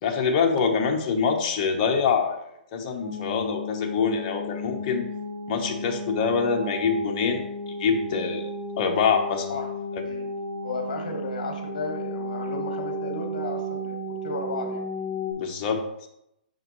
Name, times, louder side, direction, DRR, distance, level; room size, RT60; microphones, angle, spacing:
voice 1, 0.0-2.4 2.7-5.0 5.5-7.5 7.8-8.5 8.8-9.5 15.3-16.1, left 5 dB, 30° left, 2 dB, 1.0 m, -25 dB
sound 1, 3.0-15.3, left 1 dB, 15° right, 1.8 m, -34 dB
voice 2, 10.6-14.8, left 4 dB, 55° left, 3 dB, 1.3 m, -34 dB
6.8 x 4.9 x 3.1 m, 0.80 s
hypercardioid pair, 165°, 5 cm